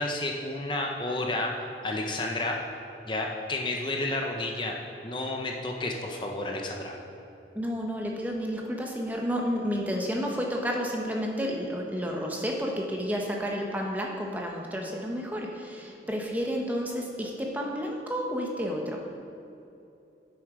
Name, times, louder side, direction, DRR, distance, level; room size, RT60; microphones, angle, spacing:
voice 1, 0.0-1.5 1.8-2.6 3.1-4.8 5.0-7.0, left 2 dB, 25° left, 1 dB, 0.7 m, -31 dB
voice 2, 7.5-19.0, equal, 10° right, 0 dB, 0.8 m, -31 dB
9.5 x 7.4 x 4.8 m, 2.8 s
head